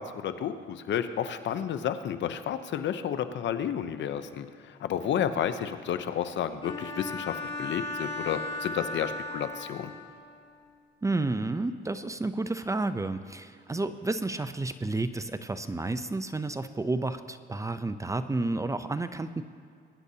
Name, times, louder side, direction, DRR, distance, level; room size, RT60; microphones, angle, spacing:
voice 1, 0.0-9.9, left 9 dB, 65° left, 10 dB, 0.7 m, -31 dB
Bowed string instrument, 6.6-10.3, left 2 dB, 25° left, 3.2 m, -36 dB
voice 2, 11.0-19.4, right 2 dB, 15° right, 11 dB, 0.5 m, -31 dB
21.5 x 9.8 x 2.8 m, 2.3 s
cardioid pair, 90°, 20 cm